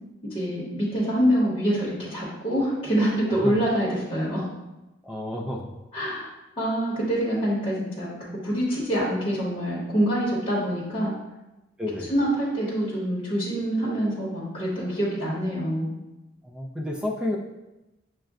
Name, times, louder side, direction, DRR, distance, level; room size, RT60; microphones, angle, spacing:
voice 1, 0.3-4.4 5.9-6.3 6.6-11.1 12.1-15.9, equal, 30° left, -8 dB, 0.9 m, -25 dB
voice 2, 5.0-5.6 11.8-12.1 16.4-17.4, left 1 dB, 5° right, 0 dB, 0.3 m, -30 dB
6.2 x 2.2 x 2.3 m, 0.98 s
head